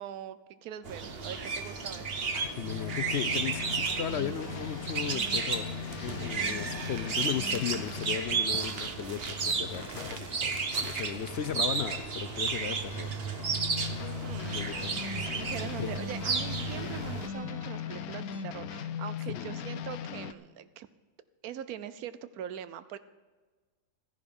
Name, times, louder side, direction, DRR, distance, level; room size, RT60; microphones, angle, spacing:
voice 1, 0.0-2.1 14.2-14.7 15.3-20.9 21.4-23.0, right 10 dB, 85° right, 13 dB, 1.2 m, -42 dB
sound 1, 0.8-17.3, right 5 dB, 45° right, 1.3 m, -33 dB
sound 2, 1.3-18.4, left 2 dB, 15° left, 0.7 m, -51 dB
voice 2, 2.3-5.7 6.0-13.1 14.5-15.3 15.8-16.0 19.3-19.5, left 9 dB, 60° left, 13 dB, 0.7 m, -36 dB
sound 3, 2.6-12.1 12.5-20.3, left 8 dB, 85° left, 1.2 m, -40 dB
15.5 x 14.0 x 5.3 m, 1.3 s
omnidirectional pair, 1.5 m